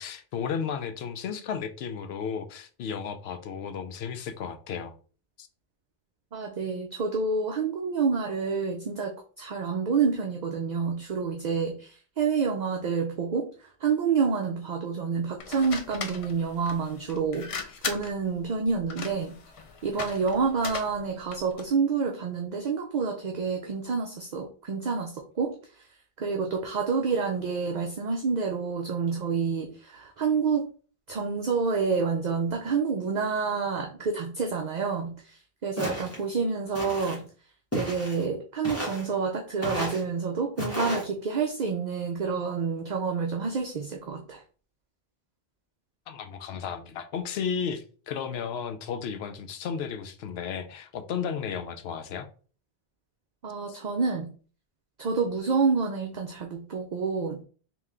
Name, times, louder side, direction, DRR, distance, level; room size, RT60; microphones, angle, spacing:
voice 1, 0.0-4.9 5.4-5.5 46.1-52.3, left 7 dB, 80° left, 0.8 m, -34 dB
voice 2, 6.3-9.1 9.4-13.5 13.8-19.4 19.8-25.6 26.2-30.7 31.1-35.4 35.6-37.2 37.7-44.4 53.4-54.3 55.0-57.4, right 5 dB, 55° right, 0.6 m, -28 dB
sound 1, 15.4-21.7, left 5 dB, 50° left, 0.4 m, -38 dB
Walk footsteps, 35.8-36.2 36.7-37.2 37.7-38.2 38.6-39.1 39.6-40.0 40.6-41.0, equal, 15° left, 1.4 m, -32 dB
3.2 x 3.0 x 3.6 m
omnidirectional pair, 1.1 m